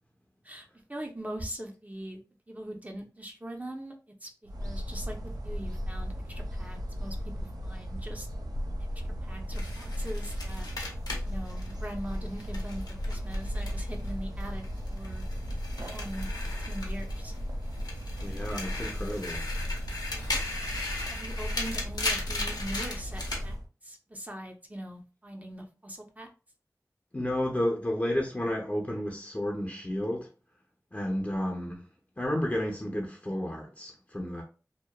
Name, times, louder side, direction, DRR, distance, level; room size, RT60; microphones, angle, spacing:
voice 1, 0.4-2.2 2.5-3.9 4.2-4.3 4.6-8.3 9.2-10.7 11.2-14.6 14.9-15.2 15.9-16.3 16.7-17.3 21.1-23.6 23.8-26.3, right 1 dB, 25° right, 0.6 m, -41 dB
sound 1, 4.5-23.7, equal, 75° right, 0.4 m, -35 dB
sound 2, 9.5-14.1 14.4-17.4 17.7-23.4, left 2 dB, 80° left, 0.7 m, -37 dB
voice 2, 18.2-19.5 27.1-30.3 30.9-31.9 32.2-34.4, left 1 dB, 25° left, 0.6 m, -31 dB
2.9 x 2.0 x 2.2 m
wide cardioid pair, 50°, 7 cm